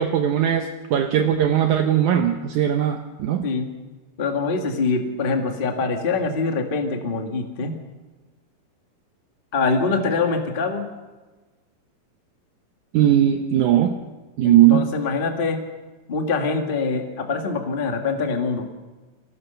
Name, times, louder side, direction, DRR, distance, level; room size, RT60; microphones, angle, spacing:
voice 1, 0.0-3.5 12.9-14.0 14.4-14.9, right 10 dB, 70° right, 5 dB, 2.0 m, -19 dB
voice 2, 4.2-7.7 9.5-10.9 14.4-15.6 16.1-18.7, left 4 dB, 30° left, 4 dB, 0.9 m, -24 dB
25.0 x 17.5 x 6.8 m, 1.3 s
omnidirectional pair, 4.0 m